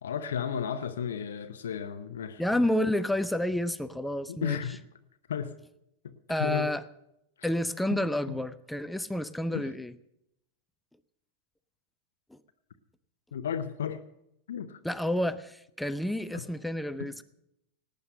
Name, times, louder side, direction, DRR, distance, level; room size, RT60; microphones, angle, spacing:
voice 1, 0.0-2.4 4.3-4.8 5.3-5.5 6.0-6.7 7.4-7.5 8.3-8.4 9.5-9.7 13.3-14.0 14.5-14.8 16.3-16.4, left 8 dB, 65° left, 9 dB, 0.7 m, -34 dB
voice 2, 2.4-4.6 6.3-6.8 7.4-9.9 12.3-12.4 14.8-17.2, left 1 dB, 5° left, 13 dB, 0.6 m, -30 dB
18.0 x 9.4 x 6.5 m, 0.80 s
figure-of-eight pair, 90°, 0 cm